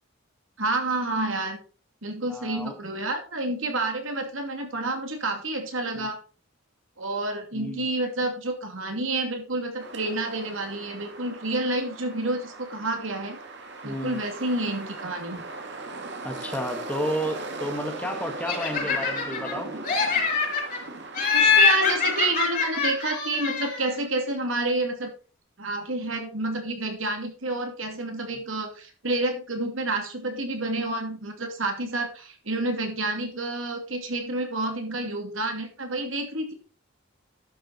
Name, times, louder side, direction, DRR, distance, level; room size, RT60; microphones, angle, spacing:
voice 1, 0.6-1.6 2.0-6.2 7.0-13.4 13.8-15.4 21.3-25.1 25.6-36.5, right 2 dB, 75° right, 4 dB, 2.6 m, -29 dB
voice 2, 2.3-2.7 6.0-6.1 7.5-7.9 13.8-14.2 16.2-19.7 21.4-21.5, equal, 5° left, 4 dB, 1.8 m, -32 dB
sound 1, 9.8-22.3, right 3 dB, 60° right, 2.1 m, -39 dB
Laughter, 18.5-19.5 19.8-20.8 21.1-23.9, left 5 dB, 45° left, 5.4 m, -24 dB
11.5 x 6.9 x 4.3 m, 0.35 s
head